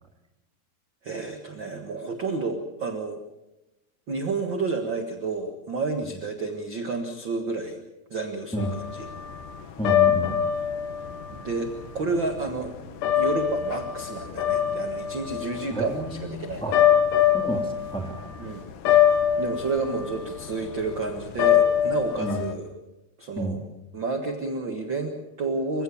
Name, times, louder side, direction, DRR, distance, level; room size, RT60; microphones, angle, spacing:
voice 1, 1.0-3.2 4.1-7.8 8.1-9.1 11.3-12.7 13.1-16.9 18.4-18.6 18.9-19.0 19.4-22.7 23.2-23.6 23.9-25.8, right 3 dB, 50° right, 5 dB, 1.4 m, -30 dB
sound 1, 8.6-22.5, left 10 dB, 65° left, 2.5 m, -23 dB
voice 2, 9.8-10.4 15.7-16.3 16.6-16.7 17.3-18.3 22.2-22.4 23.4-23.6, right 2 dB, ahead, 2 dB, 1.7 m, -30 dB
27.5 x 16.5 x 7.0 m, 0.96 s
omnidirectional pair, 4.5 m